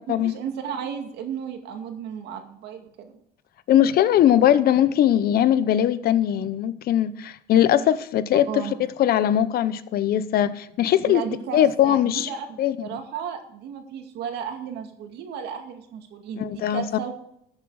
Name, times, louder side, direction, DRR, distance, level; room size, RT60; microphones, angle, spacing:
voice 1, 0.1-3.1 8.5-8.8 11.1-17.1, right 8 dB, 80° right, 4 dB, 2.2 m, -34 dB
voice 2, 3.7-8.6 9.0-11.3 11.5-12.3 12.6-12.9 16.4-16.8, left 11 dB, 65° left, 15 dB, 0.8 m, -20 dB
13.5 x 7.5 x 4.8 m, 0.75 s
cardioid pair, 110°, 17 cm